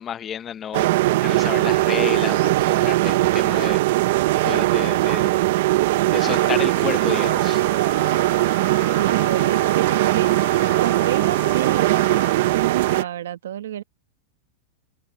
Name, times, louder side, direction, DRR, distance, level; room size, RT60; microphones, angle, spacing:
voice 1, 0.0-3.8 4.4-5.4 6.1-7.6, left 9 dB, 20° left, 0.7 m, -31 dB
sound 1, 0.7-13.0, right 17 dB, 60° right, 0.5 m, -20 dB
sound 2, 6.2-13.1, left 22 dB, 55° left, 1.7 m, -38 dB
voice 2, 9.0-10.3 10.8-12.0 12.5-13.8, right 11 dB, 90° right, 1.3 m, -29 dB
supercardioid pair, 155°, 0 cm